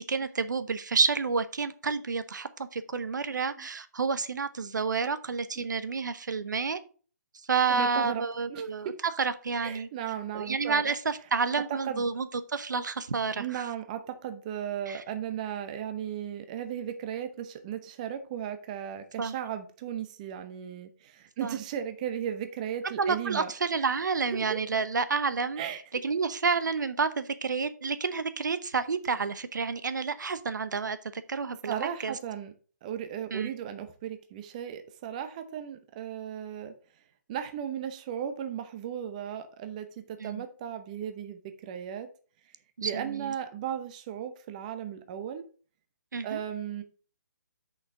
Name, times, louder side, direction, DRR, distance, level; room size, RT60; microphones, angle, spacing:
voice 1, 0.0-6.8 7.5-9.9 10.3-13.6 14.9-15.0 19.2-19.4 21.4-21.6 22.8-25.6 26.0-31.7 32.0-32.1 33.3-33.5 40.2-40.4 42.8-43.3 46.1-46.4, right 5 dB, 80° right, 0.8 m, -29 dB
voice 2, 3.2-3.7 5.6-5.7 7.7-8.2 8.5-9.0 9.6-10.9 11.7-12.1 13.4-23.5 24.3-24.6 25.6-25.8 31.7-32.5 32.8-36.7 37.3-42.1 42.8-45.5 46.2-46.8, right 9 dB, 25° right, 0.7 m, -36 dB
6.5 x 5.5 x 4.8 m
hypercardioid pair, 160°, 10 cm